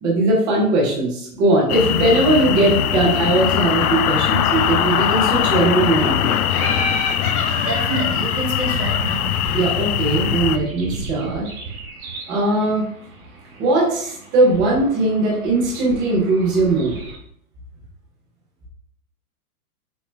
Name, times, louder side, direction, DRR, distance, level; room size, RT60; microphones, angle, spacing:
voice 1, 0.0-6.4 9.5-11.5 12.3-12.8 13.6-17.0, right 2 dB, 10° right, -3 dB, 0.3 m, -19 dB
sound 1, 1.7-10.6, left 10 dB, 75° left, 0.5 m, -21 dB
Laughter, 6.5-10.1, left 3 dB, 50° left, 1.7 m, -29 dB
sound 2, 7.6-17.2, right 4 dB, 65° right, 1.6 m, -35 dB
voice 2, 7.6-9.4, right 2 dB, 90° right, -1 dB, 1.6 m, -27 dB
5.9 x 2.1 x 3.1 m, 0.68 s
hypercardioid pair, 125°, 45 cm